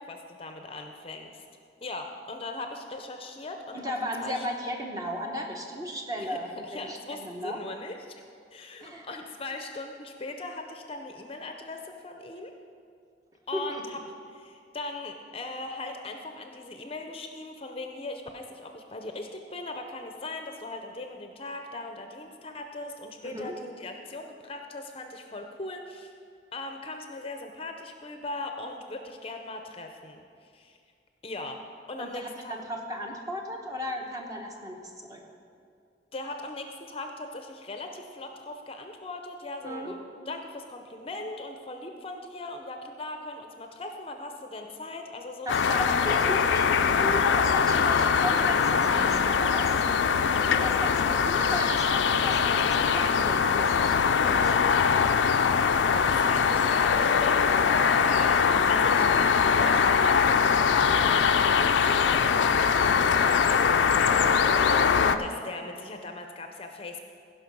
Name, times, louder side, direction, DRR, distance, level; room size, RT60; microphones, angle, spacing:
voice 1, 0.0-1.4 1.8-3.9 4.2-4.5 6.2-6.4 6.6-8.0 8.5-12.5 13.5-14.0 14.3-26.1 26.5-30.8 31.2-31.6 31.9-32.6 36.1-46.3 55.9-57.5 57.8-64.8 65.2-67.0, left 2 dB, 30° left, 5 dB, 0.6 m, -39 dB
voice 2, 3.7-7.6 8.8-9.1 13.5-13.8 23.2-23.6 32.0-35.2 39.6-39.9 45.5-49.7 50.3-54.9 64.9-65.2, equal, 20° right, 1 dB, 1.0 m, -35 dB
sound 1, 45.5-65.2, left 6 dB, 90° left, 0.4 m, -22 dB
16.0 x 5.6 x 5.3 m, 2.3 s
head